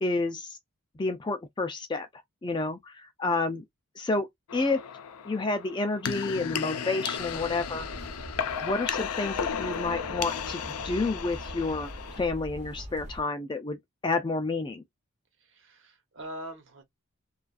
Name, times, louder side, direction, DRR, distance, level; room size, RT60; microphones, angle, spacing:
voice 1, 0.0-0.6 1.0-2.1 2.4-3.6 4.0-4.8 5.2-7.9 8.6-11.9 12.2-14.8, left 3 dB, 20° left, 0.3 m, -30 dB
sound 1, 4.5-12.2, left 7 dB, 90° left, 0.4 m, -34 dB
sound 2, 7.2-13.2, right 1 dB, 30° right, 0.6 m, -43 dB
voice 2, 15.4-16.8, right 1 dB, 55° right, 0.9 m, -43 dB
2.4 x 2.3 x 2.4 m
head